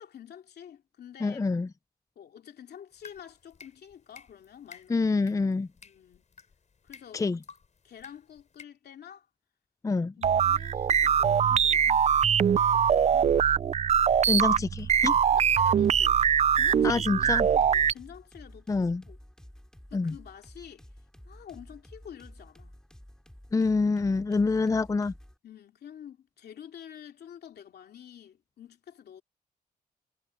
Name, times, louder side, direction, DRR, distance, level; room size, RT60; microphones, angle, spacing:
voice 1, 0.0-1.4 2.2-5.0 5.8-6.2 6.8-7.3 7.8-9.3 10.2-12.1 12.4-13.4 15.3-16.2 16.5-19.2 19.9-20.9 21.2-22.8 25.4-29.2, left 9 dB, 80° left, 2.7 m, -48 dB
voice 2, 1.2-1.7 4.9-5.7 7.1-7.4 9.8-10.1 14.3-15.2 16.8-17.5 18.7-19.0 19.9-20.1 23.5-25.1, left 3 dB, 20° left, 0.5 m, -26 dB
sound 1, 2.9-8.6, left 5 dB, 45° left, 5.0 m, -54 dB
sound 2, 10.2-17.9, right 8 dB, 40° right, 0.4 m, -23 dB
sound 3, 14.1-25.4, equal, 5° left, 5.0 m, -51 dB
cardioid pair, 110°, 16 cm